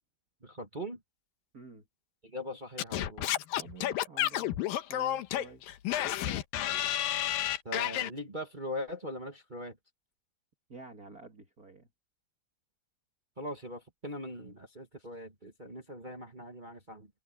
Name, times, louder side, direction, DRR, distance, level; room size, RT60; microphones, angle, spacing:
voice 1, 0.4-1.0 2.2-3.3 7.6-9.7 13.4-17.1, equal, 60° right, 0.5 m, -41 dB
voice 2, 1.5-1.8 3.5-4.6 4.9-5.6 6.0-6.4 10.7-11.9, right 4 dB, 30° right, 2.1 m, -50 dB
Singing / Scratching (performance technique), 2.8-8.1, left 12 dB, 70° left, 2.7 m, -31 dB
omnidirectional pair, 4.5 m